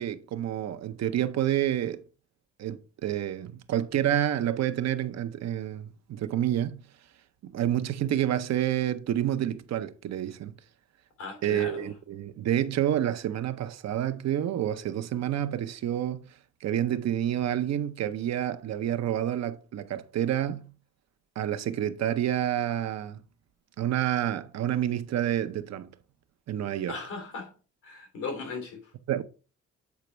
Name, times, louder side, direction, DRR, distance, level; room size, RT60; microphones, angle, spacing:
voice 1, 0.0-2.0 2.6-6.8 7.4-10.5 11.4-16.3 16.6-20.6 21.4-23.2 23.8-25.9 26.5-26.9 29.1-29.2, right 11 dB, 60° right, 0.7 m, -28 dB
voice 2, 11.2-11.9 26.9-27.5 27.8-28.9, left 4 dB, 85° left, 3.0 m, -37 dB
8.1 x 4.2 x 3.2 m
cardioid pair, 90°, 30 cm